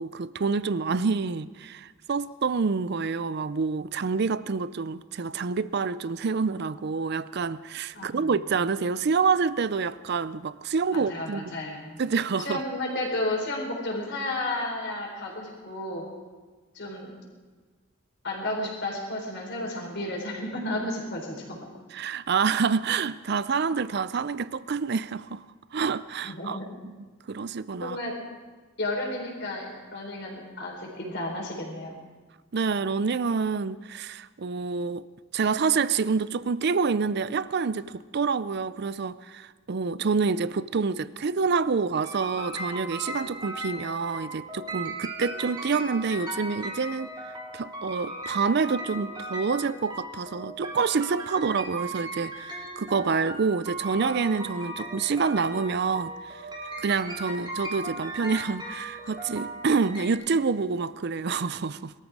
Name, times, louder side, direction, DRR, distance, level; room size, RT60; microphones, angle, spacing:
voice 1, 0.0-11.6 12.0-12.6 21.9-25.4 25.7-26.6 26.8-28.0 32.5-35.1 35.3-47.1 47.5-56.4 56.8-61.9, right 5 dB, 55° right, 0.5 m, -27 dB
voice 2, 7.9-8.3 10.9-12.0 12.4-16.0 16.7-17.1 18.2-21.4 26.2-26.6 27.8-28.2 28.8-32.0, left 1 dB, 55° left, 4.5 m, -32 dB
sound 1, 42.0-60.1, right 1 dB, 20° right, 3.2 m, -37 dB
21.5 x 13.5 x 4.8 m
head